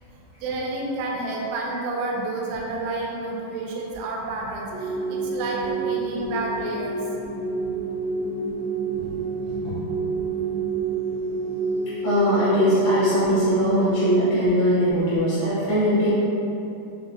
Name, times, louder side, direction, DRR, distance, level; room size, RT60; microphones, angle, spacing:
voice 1, 0.4-7.0, right 2 dB, 90° right, -2 dB, 3.1 m, -30 dB
sound 1, 4.7-14.9, right 4 dB, 70° right, 1.9 m, -28 dB
voice 2, 9.4-9.7 12.0-16.1, equal, 70° left, -12 dB, 2.4 m, -21 dB
6.7 x 2.5 x 2.7 m, 2.8 s
omnidirectional pair, 5.3 m